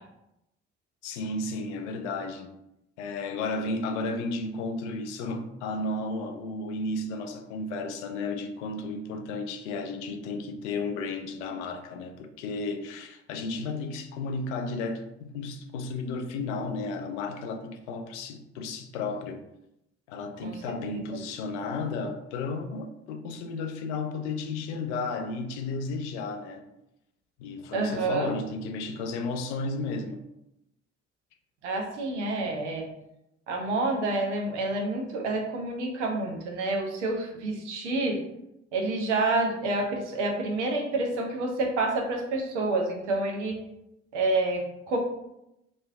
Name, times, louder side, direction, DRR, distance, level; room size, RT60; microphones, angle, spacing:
voice 1, 1.0-2.5 3.0-19.4 20.1-26.6 27.4-30.2, left 3 dB, 80° left, 0.5 m, -33 dB
voice 2, 27.7-28.3 31.6-32.9 33.5-38.2 38.7-43.6 44.1-45.0, right 2 dB, 85° right, 0.6 m, -28 dB
3.0 x 2.5 x 3.4 m
figure-of-eight pair, 45°, 35 cm